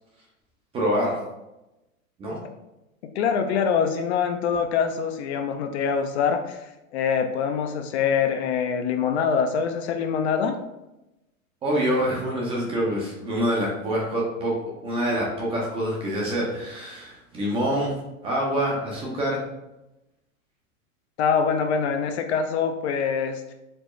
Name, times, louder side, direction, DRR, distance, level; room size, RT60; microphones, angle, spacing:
voice 1, 0.7-1.2 2.2-2.4 11.6-14.6 14.8-18.0 18.2-19.4, equal, 15° right, -3 dB, 0.5 m, -26 dB
voice 2, 3.2-10.6 21.2-23.5, left 6 dB, 55° left, 6 dB, 0.5 m, -24 dB
4.4 x 2.0 x 3.1 m, 0.93 s
hypercardioid pair, 135°, 41 cm